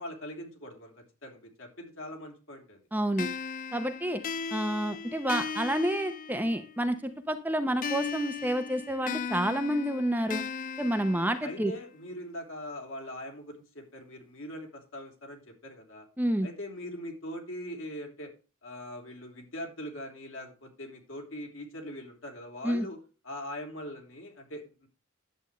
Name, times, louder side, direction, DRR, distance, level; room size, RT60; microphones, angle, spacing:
voice 1, 0.0-2.8 11.4-16.1 16.4-18.3 18.6-23.0 23.2-24.9, left 1 dB, 65° left, 2 dB, 3.3 m, -41 dB
voice 2, 2.9-3.3 3.7-4.2 4.5-10.4 10.8-11.7 16.2-16.5 22.6-22.9, right 1 dB, 10° right, 7 dB, 0.7 m, -29 dB
sound 1, 3.2-6.8 7.8-11.8, left 5 dB, 40° left, 0.5 m, -37 dB
11.0 x 8.0 x 3.1 m, 0.33 s
head